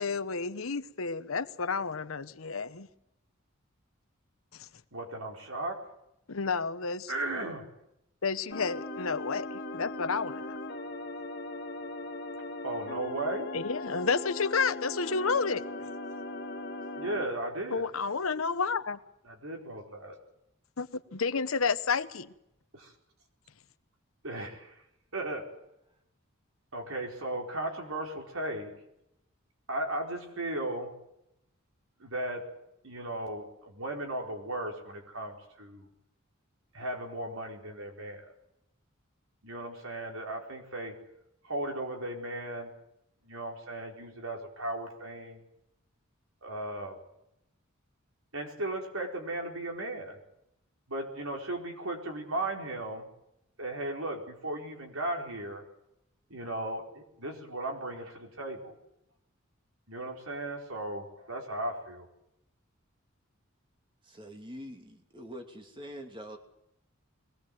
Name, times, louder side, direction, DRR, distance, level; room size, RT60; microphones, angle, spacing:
voice 1, 0.0-2.9 4.6-4.7 6.3-7.1 8.2-10.5 13.5-15.6 17.7-19.0 20.8-22.3, left 5 dB, 75° left, 1.0 m, -31 dB
voice 2, 4.9-5.9 7.1-7.8 12.6-13.5 16.9-17.9 19.2-20.2 22.7-23.0 24.2-25.5 26.7-28.7 29.7-30.9 32.0-32.5 32.8-35.9 36.7-38.3 39.4-41.0 41.4-42.8 43.2-45.4 46.4-47.0 48.3-50.2 50.9-53.1 53.6-55.7 56.3-58.8 59.9-62.1, right 1 dB, 80° right, 4.7 m, -36 dB
sound 1, 8.5-17.2, left 2 dB, 50° left, 1.8 m, -39 dB
voice 3, 64.0-66.4, equal, 25° right, 2.7 m, -44 dB
22.0 x 18.5 x 7.8 m
head